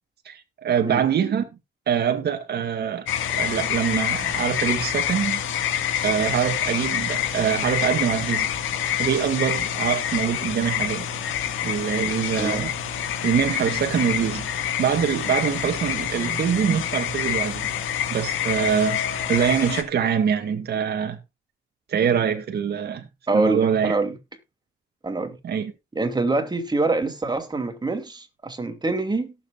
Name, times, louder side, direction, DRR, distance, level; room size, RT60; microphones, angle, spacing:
voice 1, 0.3-1.4 1.9-3.1 3.3-5.4 6.0-8.5 9.0-11.0 11.6-12.7 13.2-14.5 14.8-17.7 18.1-19.0 19.3-21.2 21.9-23.1 23.3-23.9 25.4-25.7, right 8 dB, 55° right, 2.0 m, -24 dB
sound 1, 3.1-19.8, left 9 dB, 80° left, 1.8 m, -27 dB
voice 2, 12.4-12.7 23.3-24.2 25.0-25.4 25.9-29.3, right 3 dB, 20° right, 2.8 m, -25 dB
17.5 x 8.0 x 2.4 m
cardioid pair, 90°, 20 cm